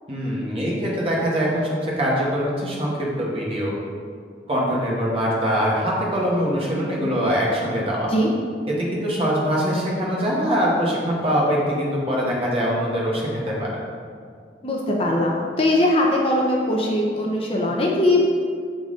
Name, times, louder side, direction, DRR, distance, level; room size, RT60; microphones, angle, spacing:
voice 1, 0.1-3.7 4.5-8.1 8.8-13.8, equal, 35° right, -4 dB, 1.2 m, -23 dB
voice 2, 14.6-18.3, left 1 dB, 35° left, -1 dB, 0.6 m, -20 dB
6.8 x 3.9 x 3.7 m, 2.1 s
head